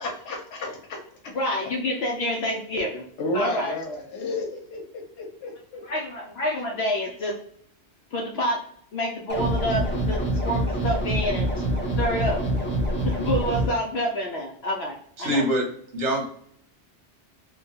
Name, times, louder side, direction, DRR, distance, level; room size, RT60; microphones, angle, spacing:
voice 1, 0.0-1.3 3.2-5.8, left 1 dB, 90° left, 1 dB, 1.0 m, -32 dB
voice 2, 1.3-3.0 3.3-3.8 5.8-7.4 8.1-8.6 8.9-10.2 10.4-11.5 12.0-12.4 13.0-15.4, equal, 70° left, 0 dB, 0.8 m, -28 dB
sound 1, 9.3-13.7, right 1 dB, 10° left, 0.6 m, -25 dB
voice 3, 15.2-15.6 15.9-16.2, equal, 80° right, -1 dB, 1.3 m, -23 dB
2.8 x 2.3 x 2.7 m, 0.62 s
omnidirectional pair, 1.2 m